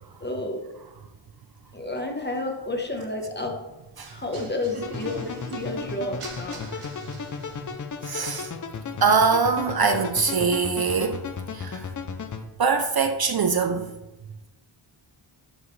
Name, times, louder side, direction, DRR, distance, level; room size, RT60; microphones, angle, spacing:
voice 1, 0.2-0.6 1.7-3.5 4.1-6.9, left 2 dB, 20° left, 2 dB, 1.0 m, -31 dB
sound 1, 4.0-8.0, right 3 dB, 85° right, 1.5 m, -42 dB
sound 2, 4.8-12.4, left 5 dB, 40° left, 0.5 m, -35 dB
voice 2, 8.0-8.5 9.0-11.2 11.5-11.9 12.6-13.9, right 5 dB, 50° right, 7 dB, 0.5 m, -23 dB
11.0 x 4.8 x 3.2 m, 1.0 s
wide cardioid pair, 165°, 50 cm